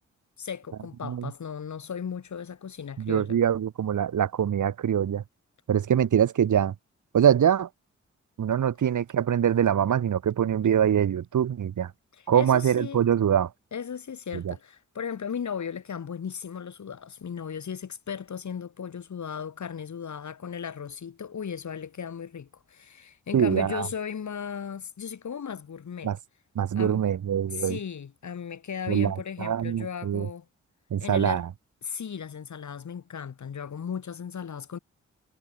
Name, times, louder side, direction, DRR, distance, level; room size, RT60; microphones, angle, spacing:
voice 1, 0.4-3.4 12.1-13.1 13.7-26.1 26.7-27.0 27.5-30.4 31.0-31.4 31.8-34.8, left 7 dB, 70° left, 5.1 m, -36 dB
voice 2, 3.0-5.2 5.7-6.7 7.1-7.7 8.4-11.9 12.3-13.5 14.3-14.5 23.3-23.9 26.0-26.2 26.6-27.8 28.9-30.3 30.9-31.5, right 9 dB, 90° right, 5.9 m, -24 dB
cardioid pair, 60°, 30 cm